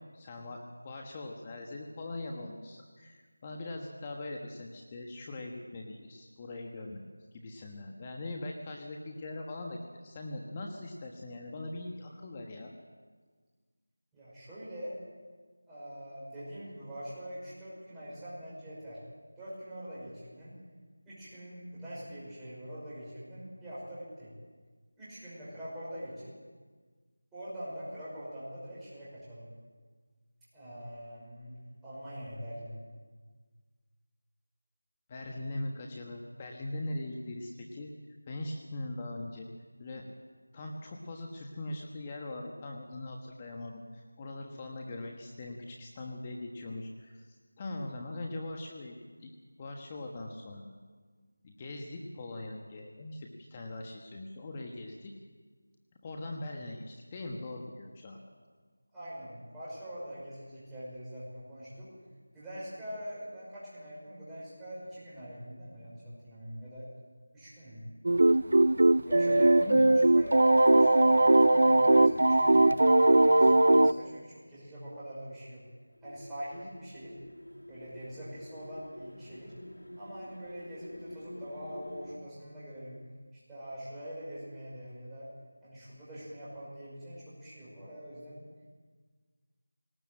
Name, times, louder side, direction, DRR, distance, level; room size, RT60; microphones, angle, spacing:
voice 1, 0.1-0.6 0.8-7.0 7.3-12.7 35.1-37.9 38.3-39.5 39.8-40.0 40.5-48.9 49.2-49.3 49.6-50.7 51.4-55.1 56.0-58.2 69.3-69.9, left 2 dB, 20° left, 1 dB, 1.3 m, -41 dB
voice 2, 14.1-15.0 15.7-19.0 19.4-20.6 21.0-24.3 25.0-26.3 27.3-29.5 30.5-32.8 44.5-44.7 58.9-61.9 62.3-66.9 67.3-67.9 69.0-75.6 76.0-77.2 77.7-79.5 80.0-83.0 83.3-85.3 85.6-88.5, equal, 5° right, -10 dB, 5.6 m, -44 dB
sound 1, 68.0-73.9, right 2 dB, 65° right, 0.6 m, -20 dB
sound 2, 76.0-82.2, left 1 dB, 90° left, 3.0 m, -47 dB
19.5 x 19.0 x 7.7 m, 1.5 s
figure-of-eight pair, 170°, 0 cm